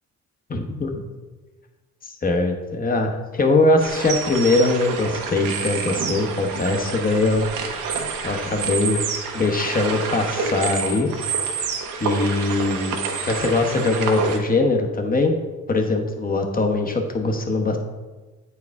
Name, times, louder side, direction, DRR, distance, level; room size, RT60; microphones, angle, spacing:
voice 1, 0.5-0.9 2.0-7.5 8.2-9.0 9.3-11.1 12.0-13.0 13.2-15.3 15.7-17.8, left 2 dB, 30° left, 4 dB, 1.0 m, -21 dB
sound 1, 3.8-14.4, right 5 dB, 85° right, 1.0 m, -28 dB
8.2 x 4.7 x 3.5 m, 1.2 s
cardioid pair, 90°, 30 cm